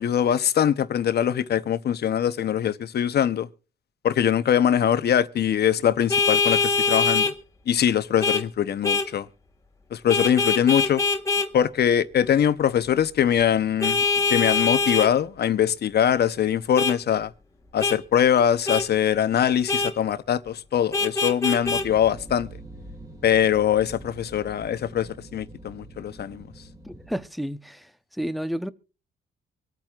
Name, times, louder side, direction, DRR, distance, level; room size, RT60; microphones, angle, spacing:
voice 1, 0.0-3.5 4.0-7.3 7.7-9.3 9.9-11.0 11.5-17.3 17.7-22.5 23.2-26.5, left 9 dB, 55° left, 0.8 m, -22 dB
Vehicle horn car horn honking, 6.1-7.3 8.2-8.4 8.8-9.1 10.1-11.5 13.8-15.1 16.8-17.0 17.8-18.0 18.7-18.9 19.7-19.9 20.9-21.9, left 4 dB, 15° left, 1.7 m, -23 dB
sound 1, 21.6-27.2, right 1 dB, 20° right, 2.6 m, -44 dB
voice 2, 26.8-28.7, equal, ahead, 0.8 m, -31 dB
24.5 x 9.0 x 2.4 m
cardioid pair, 90°, 20 cm